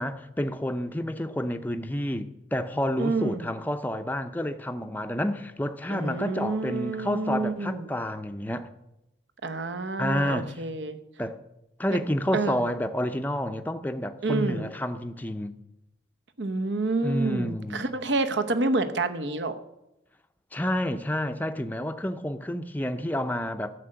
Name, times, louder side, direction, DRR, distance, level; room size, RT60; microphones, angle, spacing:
voice 1, 0.0-8.7 10.0-10.6 11.2-11.4 11.8-15.5 17.0-17.9 20.5-23.7, left 1 dB, 10° left, 0.5 m, -29 dB
voice 2, 3.0-3.5 5.9-7.9 9.4-11.0 11.9-12.1 12.3-12.6 14.2-14.6 16.4-19.6, right 3 dB, 70° right, 0.9 m, -28 dB
13.0 x 6.5 x 8.8 m
head